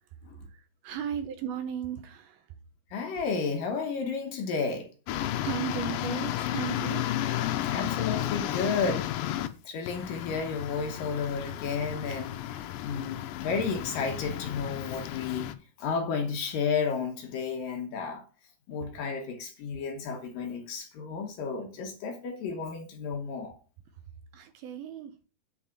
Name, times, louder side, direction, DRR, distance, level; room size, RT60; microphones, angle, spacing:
voice 1, 0.5-2.6 5.2-7.1 24.3-25.2, right 9 dB, 75° right, 2.4 m, -36 dB
voice 2, 2.9-4.9 7.6-9.3 9.6-15.5 15.8-18.2 18.7-23.6, left 5 dB, 65° left, 2.5 m, -32 dB
sound 1, 5.1-9.5 9.9-15.5, left 13 dB, 85° left, 1.9 m, -33 dB
8.8 x 4.8 x 7.3 m
omnidirectional pair, 4.9 m